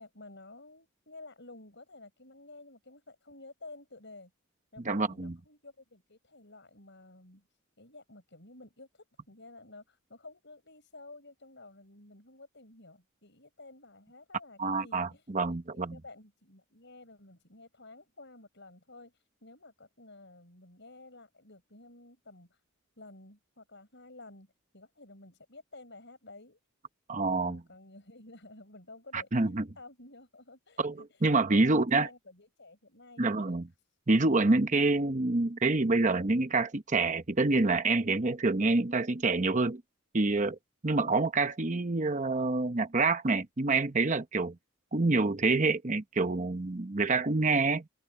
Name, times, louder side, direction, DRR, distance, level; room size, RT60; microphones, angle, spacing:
voice 1, 0.0-4.3 4.7-7.4 7.8-19.1 19.4-22.6 23.0-26.6 27.3-33.6, left 2 dB, 55° left, 7.2 m, -52 dB
voice 2, 4.8-5.3 14.6-16.0 27.1-27.6 29.1-29.6 30.8-32.1 33.2-33.7 34.1-39.8 40.1-40.6 40.8-44.5 44.9-47.8, right 3 dB, 35° right, 0.9 m, -27 dB
head